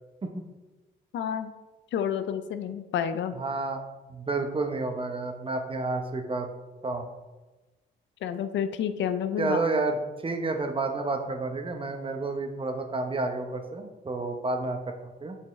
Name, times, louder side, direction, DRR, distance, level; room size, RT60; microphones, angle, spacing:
voice 1, 1.1-1.5 1.9-3.4 8.2-9.6, left 8 dB, 70° left, 10 dB, 0.5 m, -29 dB
voice 2, 3.3-3.8 4.1-6.5 6.8-7.1 9.4-15.4, right 3 dB, 25° right, 5 dB, 0.8 m, -30 dB
6.8 x 5.4 x 3.1 m, 1.1 s
cardioid pair, 90°, 20 cm